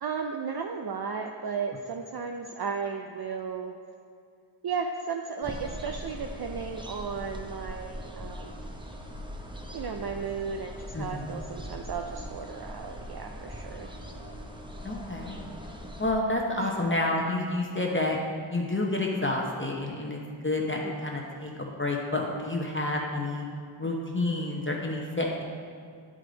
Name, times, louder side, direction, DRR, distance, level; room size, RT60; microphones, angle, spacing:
voice 1, 0.0-3.8 4.6-8.6 9.7-13.9 16.6-16.7 20.7-20.9 23.8-24.0, right 5 dB, 55° right, 3 dB, 0.5 m, -35 dB
sound 1, 5.4-16.1, equal, 10° right, 0.7 m, -41 dB
voice 2, 10.9-11.3 14.8-15.4 16.0-18.2 18.5-23.4 23.8-25.4, left 2 dB, 25° left, -1 dB, 0.8 m, -29 dB
9.6 x 5.0 x 3.9 m, 2.4 s
wide cardioid pair, 65°, 48 cm